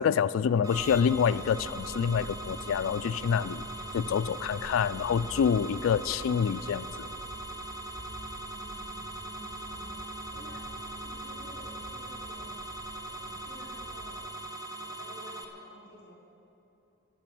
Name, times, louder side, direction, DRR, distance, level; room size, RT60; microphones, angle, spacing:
voice 1, 0.0-3.7 3.9-7.1, left 7 dB, 90° left, 17 dB, 0.3 m, -27 dB
sound 1, 0.6-15.4, right 2 dB, 20° right, 0.9 m, -41 dB
sound 2, 0.7-14.3, equal, 45° left, 3.1 m, -49 dB
sound 3, 0.9-15.4, equal, 45° right, 0.6 m, -50 dB
voice 2, 8.4-10.0 10.3-10.7 10.9-12.6 12.9-14.2 14.7-16.1, left 1 dB, 60° left, -1 dB, 2.9 m, -52 dB
12.0 x 9.2 x 8.6 m, 2.9 s
head